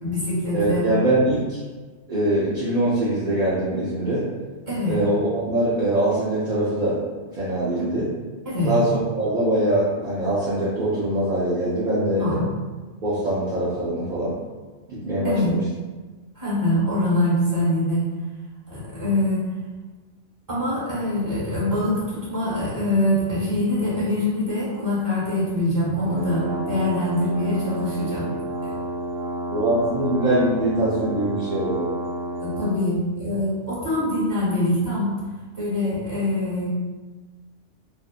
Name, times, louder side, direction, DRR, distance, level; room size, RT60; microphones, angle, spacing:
voice 1, 0.0-0.9 4.7-5.0 7.7-7.9 8.4-8.7 12.2-12.5 15.2-15.5 16.3-18.1 18.7-19.5 20.5-28.3 28.6-28.7 32.4-35.2 35.5-36.7, left 1 dB, 20° right, -9 dB, 1.0 m, -24 dB
voice 2, 0.5-1.6 2.1-4.2 4.9-7.0 7.3-8.1 8.6-8.9 9.2-12.2 13.0-14.4 14.9-15.6 29.5-31.9, right 1 dB, 55° right, -8 dB, 0.5 m, -23 dB
sound 1, 26.0-32.8, right 1 dB, 80° right, 1.0 m, -30 dB
2.6 x 2.3 x 2.3 m, 1.3 s
omnidirectional pair, 1.3 m